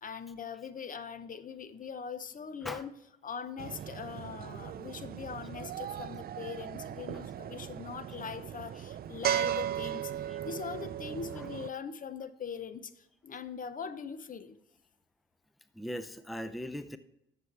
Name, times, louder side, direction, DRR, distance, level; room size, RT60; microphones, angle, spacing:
voice 1, 0.0-10.1 10.4-14.6, left 6 dB, 45° left, 13 dB, 0.7 m, -41 dB
sound 1, 3.6-11.7, right 11 dB, 50° right, 0.4 m, -37 dB
voice 2, 15.7-17.0, equal, ahead, 11 dB, 0.5 m, -40 dB
12.5 x 7.0 x 3.3 m, 0.85 s
cardioid pair, 90°, 20 cm